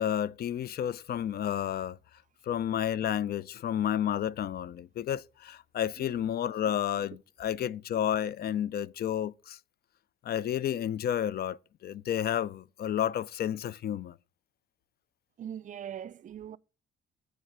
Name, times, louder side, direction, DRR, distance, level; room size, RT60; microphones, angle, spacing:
voice 1, 0.0-2.0 2.5-9.6 10.2-14.1, left 10 dB, 50° left, 0.4 m, -31 dB
voice 2, 15.4-16.6, right 9 dB, 40° right, 0.4 m, -41 dB
9.0 x 3.4 x 6.0 m
cardioid pair, 90°, 20 cm